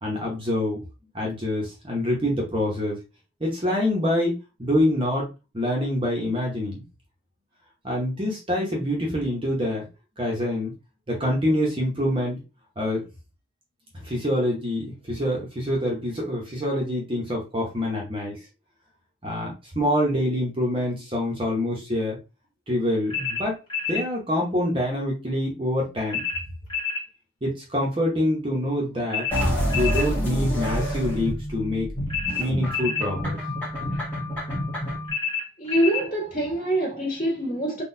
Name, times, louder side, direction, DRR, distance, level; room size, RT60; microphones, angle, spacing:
voice 1, 0.0-0.8 1.1-3.0 3.4-4.3 4.6-5.2 5.5-6.8 7.8-9.8 10.2-10.7 11.1-12.4 12.8-13.0 14.0-18.3 19.2-22.2 22.7-23.6 23.9-26.2 27.4-29.3 29.8-31.9 32.4-33.4, left 1 dB, 25° right, 0.8 m, -25 dB
sound 1, 23.1-24.1 26.1-27.1 29.1-30.1 32.1-33.1 35.1-36.1, left 5 dB, 25° left, 1.3 m, -28 dB
sound 2, 29.3-35.1, equal, 10° left, 1.5 m, -28 dB
voice 2, 35.6-37.8, right 1 dB, 40° left, 1.7 m, -25 dB
3.9 x 2.3 x 2.6 m
head